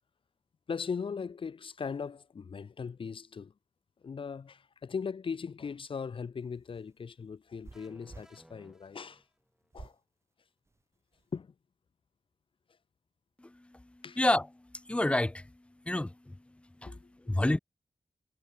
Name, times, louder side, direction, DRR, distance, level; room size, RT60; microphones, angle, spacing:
voice 1, 0.7-3.5 4.0-9.2 9.7-10.0 11.3-11.5 14.0-14.2 16.8-17.1, left 6 dB, 70° left, 1.6 m, -39 dB
sound 1, 6.4-8.3 9.7-10.0 10.7-11.3, right 3 dB, 30° right, 6.4 m, -51 dB
sound 2, 7.7-9.7, equal, 5° right, 6.0 m, -60 dB
voice 2, 13.4-13.8 14.2-14.5 14.9-15.5 15.9-16.4 16.8-16.9 17.3-17.6, left 1 dB, 10° left, 0.7 m, -28 dB
wide cardioid pair, 125°, 9 cm